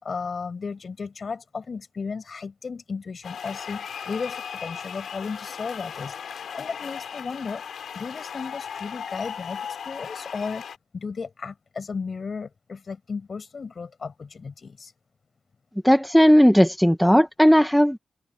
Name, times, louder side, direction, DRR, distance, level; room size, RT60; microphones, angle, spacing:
voice 1, 0.0-7.6 7.9-10.6 10.9-14.9, left 5 dB, 55° left, 6.0 m, -34 dB
sound 1, 3.2-10.8, left 7 dB, 85° left, 3.5 m, -37 dB
voice 2, 15.8-18.0, equal, ahead, 1.4 m, -16 dB
open air
cardioid pair, 75°, 0 cm